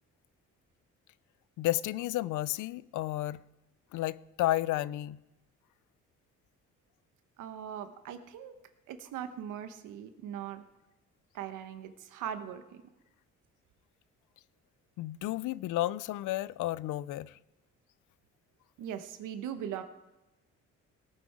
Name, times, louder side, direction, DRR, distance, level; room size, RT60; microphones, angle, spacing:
voice 1, 1.6-3.4 3.9-5.2 15.0-17.3, left 15 dB, 80° left, 0.5 m, -32 dB
voice 2, 7.4-8.5 8.9-10.6 11.3-12.8 18.8-19.8, right 9 dB, 90° right, 1.2 m, -40 dB
18.0 x 7.7 x 4.9 m
cardioid pair, 90°, 30 cm